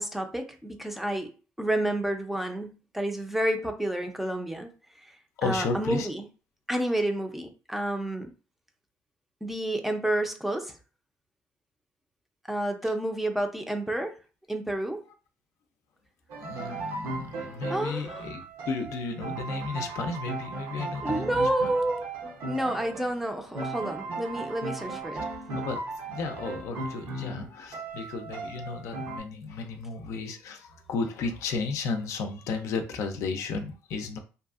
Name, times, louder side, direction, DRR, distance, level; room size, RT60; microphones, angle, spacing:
voice 1, 0.0-1.3 1.6-4.7 5.0-6.3 6.7-8.3 9.4-10.8 12.5-14.2 14.5-15.0 17.7-18.2 21.0-22.1 22.5-25.3, right 1 dB, 5° right, 0.5 m, -29 dB
voice 2, 5.4-6.1 16.4-21.7 25.1-34.2, left 4 dB, 70° left, 0.4 m, -34 dB
sound 1, 16.3-29.2, right 3 dB, 70° right, 0.8 m, -37 dB
2.7 x 2.3 x 2.4 m
cardioid pair, 100°, 5 cm